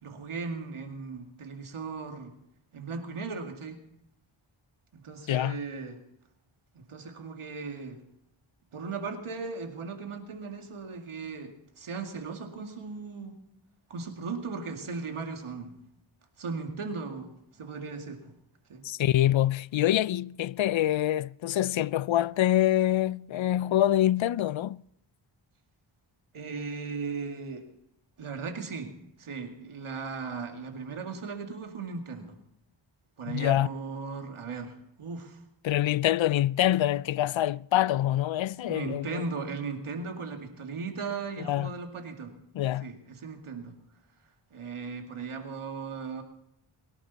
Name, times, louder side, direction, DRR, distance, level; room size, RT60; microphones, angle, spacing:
voice 1, 0.0-2.3 2.7-3.8 4.9-6.0 6.7-8.0 8.7-13.4 13.9-15.8 16.4-18.3 18.7-18.8 26.3-27.7 28.2-32.4 33.2-35.4 38.7-42.4 42.8-43.8 44.5-46.2, right 4 dB, 90° right, 2.3 m, -37 dB
voice 2, 5.3-5.6 18.8-24.8 33.3-33.7 35.6-39.2 41.4-41.7 42.5-42.9, left 13 dB, 70° left, 0.5 m, -25 dB
22.5 x 11.5 x 4.1 m
cardioid pair, 50°, 49 cm